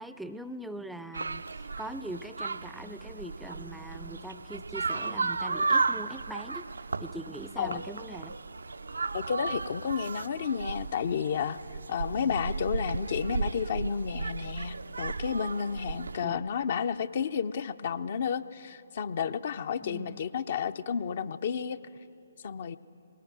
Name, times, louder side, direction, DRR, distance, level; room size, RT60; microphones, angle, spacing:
voice 1, 0.0-1.4 1.8-6.7 7.0-8.4 12.1-12.3 16.2-16.4 19.8-20.2, right 1 dB, ahead, 12 dB, 0.5 m, -42 dB
sound 1, 1.1-16.2, right 4 dB, 70° right, 0.4 m, -34 dB
voice 2, 9.1-11.6 11.9-21.8 22.4-22.8, left 7 dB, 50° left, 13 dB, 0.6 m, -31 dB
20.0 x 18.5 x 9.5 m, 2.7 s
figure-of-eight pair, 135°, 0 cm